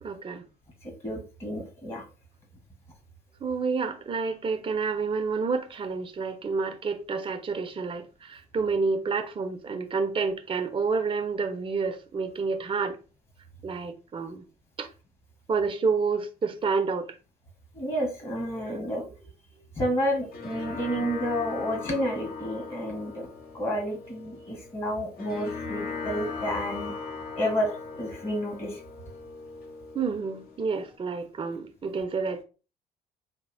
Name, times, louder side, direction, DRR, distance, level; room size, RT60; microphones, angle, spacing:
voice 1, 0.0-0.4 3.4-13.0 13.6-14.4 14.8-14.9 15.5-17.2 18.6-18.8 29.9-32.4, right 4 dB, 25° right, 0.6 m, -29 dB
voice 2, 0.8-2.0 17.7-19.0 19.8-23.3 23.5-26.9 27.4-28.8, equal, 30° left, 1.5 m, -30 dB
sound 1, 20.0-30.9, left 4 dB, 50° left, 1.0 m, -39 dB
3.5 x 2.3 x 3.4 m
figure-of-eight pair, 50°, 20 cm